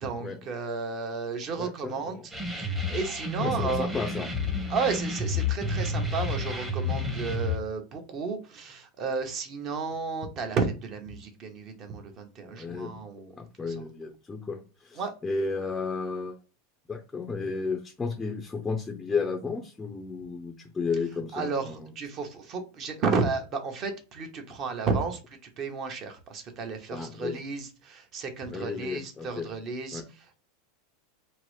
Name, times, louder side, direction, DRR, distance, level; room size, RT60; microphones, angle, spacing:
voice 1, 0.0-3.9 4.7-13.3 13.6-13.8 15.0-15.1 21.3-30.3, right 4 dB, 40° right, 5 dB, 0.8 m, -33 dB
voice 2, 1.6-2.2 3.4-4.3 12.5-13.0 13.4-16.4 16.9-21.9 26.9-27.3 28.5-29.5 29.9-30.1, left 4 dB, 15° left, 4 dB, 0.4 m, -33 dB
sound 1, 2.3-7.6, left 3 dB, 10° right, 0.8 m, -30 dB
2.8 x 2.0 x 3.1 m, 0.34 s
hypercardioid pair, 110°, 0 cm